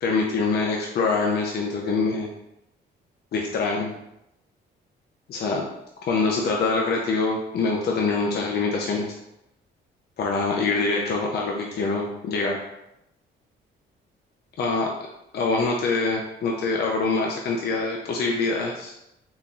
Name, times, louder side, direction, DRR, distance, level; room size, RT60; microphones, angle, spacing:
voice 1, 0.0-2.3 3.3-3.9 5.3-5.6 6.1-9.1 10.2-12.6 14.6-14.9 15.3-18.9, left 3 dB, 55° left, 0 dB, 0.5 m, -24 dB
3.7 x 2.7 x 2.4 m, 0.84 s
cardioid pair, 90°, 20 cm